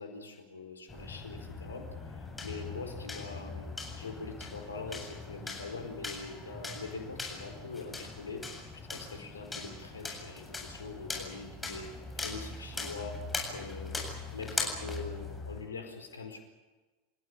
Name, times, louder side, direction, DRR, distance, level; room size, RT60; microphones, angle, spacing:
voice 1, 0.0-8.5 8.7-13.2 13.5-14.0 14.3-16.4, left 4 dB, 90° left, 6 dB, 4.7 m, -43 dB
sound 1, 0.9-15.7, left 3 dB, 15° left, 7.9 m, -40 dB
29.5 x 16.0 x 9.9 m, 1.2 s
hypercardioid pair, 90°, 0 cm